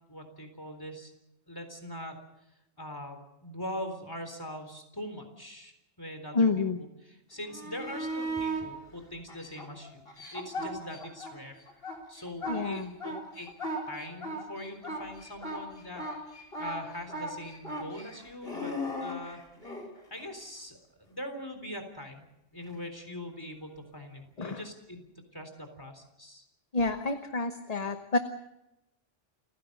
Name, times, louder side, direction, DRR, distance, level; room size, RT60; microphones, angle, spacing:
voice 1, 0.1-1.1 1.5-2.2 2.8-6.7 7.0-10.0 10.3-13.5 13.9-18.7 19.0-19.4 20.1-22.2 22.5-25.0 25.3-26.4, left 1 dB, 15° left, 6 dB, 3.8 m, -42 dB
voice 2, 6.3-6.8 12.5-12.9 24.4-24.6 26.7-28.2, left 3 dB, 35° left, 7 dB, 1.1 m, -28 dB
sound 1, 7.4-8.7 9.3-11.3 11.7-19.9 22.6-22.7, right 1 dB, 50° left, 5.1 m, -37 dB
29.0 x 16.0 x 6.8 m, 0.88 s
omnidirectional pair, 1.3 m